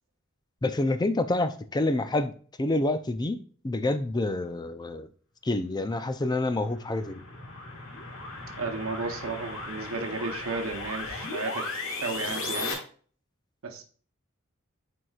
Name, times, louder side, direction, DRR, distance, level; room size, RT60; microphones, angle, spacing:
voice 1, 0.6-5.1 5.4-7.2, left 2 dB, 20° left, 0.5 m, -28 dB
sound 1, 6.2-12.7, left 3 dB, 70° left, 1.7 m, -36 dB
voice 2, 8.6-11.7 12.0-12.8 13.6-13.8, right 3 dB, 85° right, 0.9 m, -33 dB
8.9 x 4.6 x 2.4 m
head